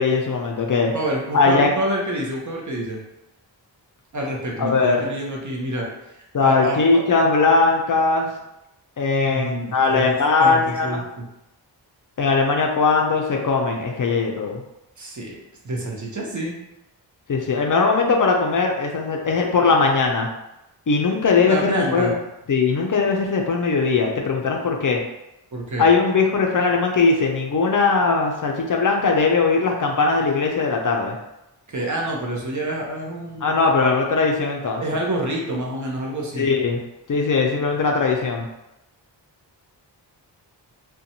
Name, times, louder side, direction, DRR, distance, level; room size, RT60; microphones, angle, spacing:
voice 1, 0.0-0.9 1.3-1.7 4.6-5.0 6.3-8.3 9.0-11.0 12.2-14.6 17.3-20.3 20.9-22.1 22.5-25.0 25.8-31.2 33.4-34.8 36.4-36.8 37.1-38.5, left 4 dB, 45° left, 1 dB, 0.5 m, -19 dB
voice 2, 0.9-3.0 4.1-5.9 6.4-7.0 9.3-11.3 15.0-16.6 21.5-22.1 25.5-25.9 31.7-33.5 34.8-36.5, right 1 dB, 40° right, -1 dB, 0.7 m, -27 dB
2.5 x 2.2 x 2.8 m, 0.90 s
cardioid pair, 50°, 44 cm